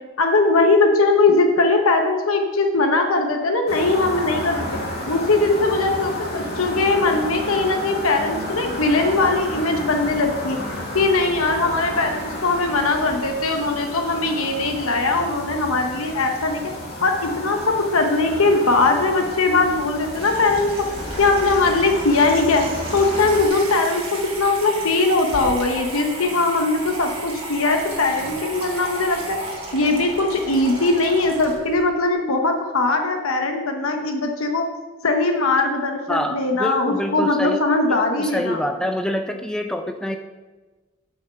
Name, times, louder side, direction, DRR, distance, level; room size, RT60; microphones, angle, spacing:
voice 1, 0.2-4.6 5.1-10.6 10.9-16.6 17.0-20.9 21.2-22.6 22.9-29.4 29.7-34.6 35.0-38.6, left 3 dB, 70° left, 4 dB, 1.0 m, -20 dB
sound 1, 3.7-23.5, left 1 dB, 45° left, 1.9 m, -32 dB
Water tap faucet / Sink (filling or washing), 19.6-31.8, right 2 dB, 25° right, 1.7 m, -35 dB
voice 2, 36.1-37.6 37.9-40.2, equal, 5° left, 6 dB, 0.4 m, -26 dB
8.5 x 6.4 x 5.7 m, 1.3 s
head